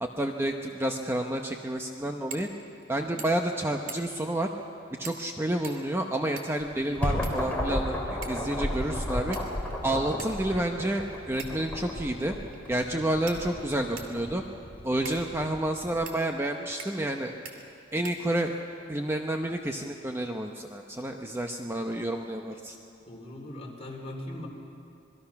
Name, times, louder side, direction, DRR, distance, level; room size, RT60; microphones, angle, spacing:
voice 1, 0.0-2.5 2.9-4.5 5.0-9.4 9.8-12.3 12.7-14.4 14.8-17.3 17.9-18.5 18.9-22.8, right 1 dB, 10° right, 3 dB, 0.9 m, -30 dB
sound 1, 2.3-2.5 2.8-2.9 3.2-3.5 3.9-4.3 5.0-5.3 5.6-6.7 7.2-7.8 8.2-8.5 9.3-9.7 10.2-10.3 11.4-11.7 12.5-12.6 13.3-14.2 15.1-15.2 16.1-16.2 16.8-17.1 17.5-17.6 18.0-18.6, right 6 dB, 70° right, 2.7 m, -44 dB
sound 2, 6.7-16.1, left 1 dB, 10° left, 2.9 m, -34 dB
voice 2, 9.8-10.1 23.1-24.5, left 1 dB, 30° left, -1 dB, 3.8 m, -40 dB
26.5 x 21.0 x 5.9 m, 2.6 s
head